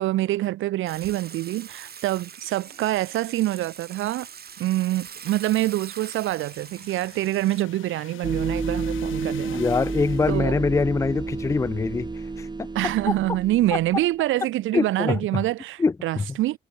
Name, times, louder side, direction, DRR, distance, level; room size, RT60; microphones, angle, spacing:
voice 1, 0.0-4.3 4.6-9.7 10.3-10.5 12.7-16.6, right 16 dB, 85° right, 0.9 m, -25 dB
Water / Water tap faucet / Sink (filling or washing), 0.9-7.6, right 7 dB, 50° right, 7.5 m, -43 dB
sound 1, 5.7-10.6, left 14 dB, 85° left, 5.3 m, -46 dB
sound 2, 8.2-14.1, right 3 dB, 20° right, 1.8 m, -30 dB
voice 2, 9.5-12.1 12.4-12.7 13.1-13.2 14.7-15.4 15.8-16.3, left 4 dB, 15° left, 0.4 m, -24 dB
cardioid pair, 90°, 20 cm